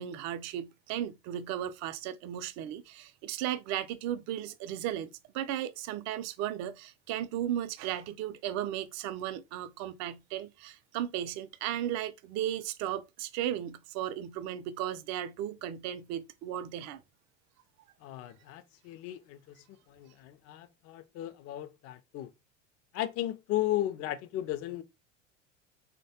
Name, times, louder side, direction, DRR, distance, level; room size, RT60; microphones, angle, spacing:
voice 1, 0.0-17.0, right 11 dB, 45° right, 0.5 m, -35 dB
voice 2, 18.0-22.3 22.9-24.8, left 14 dB, 40° left, 0.4 m, -35 dB
3.2 x 2.2 x 2.7 m
hypercardioid pair, 80°, 37 cm